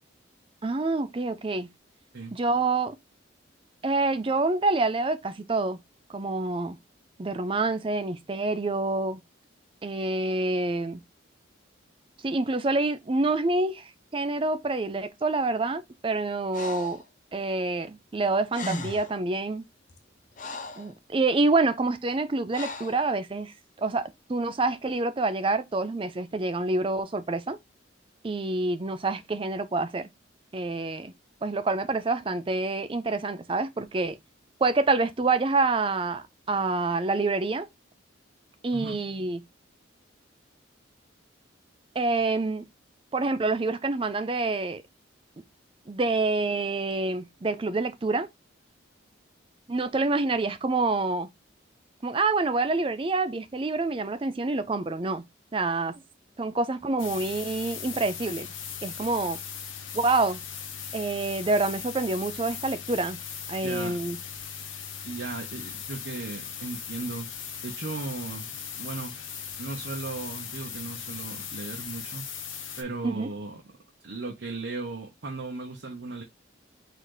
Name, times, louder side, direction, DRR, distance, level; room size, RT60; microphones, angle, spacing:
voice 1, 0.6-1.7 2.3-3.0 3.8-5.8 6.1-6.8 7.2-9.2 9.8-11.0 12.2-17.0 17.3-19.6 20.8-27.6 28.2-30.1 30.5-31.1 31.4-34.2 34.6-37.7 38.6-39.4 42.0-42.6 43.1-44.8 45.9-48.3 49.7-51.3 52.0-55.2 55.5-56.0 56.4-58.5 58.8-59.4 59.9-60.4 60.9-63.2 63.5-64.2 73.0-73.3, right 3 dB, 25° right, 0.4 m, -27 dB
Breathing, 16.5-17.0 18.2-18.3 18.5-19.2 19.9-20.9 22.5-23.0, left 2 dB, 40° left, 0.6 m, -37 dB
sound 1, 57.0-72.8, left 7 dB, 85° left, 0.9 m, -39 dB
voice 2, 63.6-64.0 65.0-69.2 69.6-72.2 72.8-73.6 74.0-76.2, right 3 dB, 60° right, 0.8 m, -36 dB
4.1 x 2.6 x 4.7 m
head